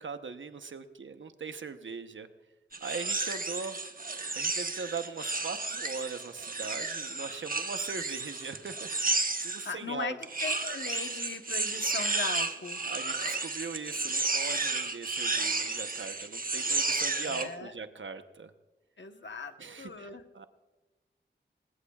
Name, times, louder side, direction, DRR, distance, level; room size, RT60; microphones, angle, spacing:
voice 1, 0.0-2.3 2.8-3.8 4.3-10.2 12.8-18.5 19.6-20.5, right 5 dB, 85° right, 8 dB, 0.9 m, -40 dB
sound 1, 2.7-9.7 10.2-17.5, right 3 dB, 45° right, 1.1 m, -32 dB
voice 2, 9.6-10.1 10.4-12.8 17.2-17.7 19.0-20.2, left 4 dB, 70° left, 7 dB, 1.1 m, -38 dB
20.0 x 20.0 x 2.4 m, 1.1 s
wide cardioid pair, 60°, 19 cm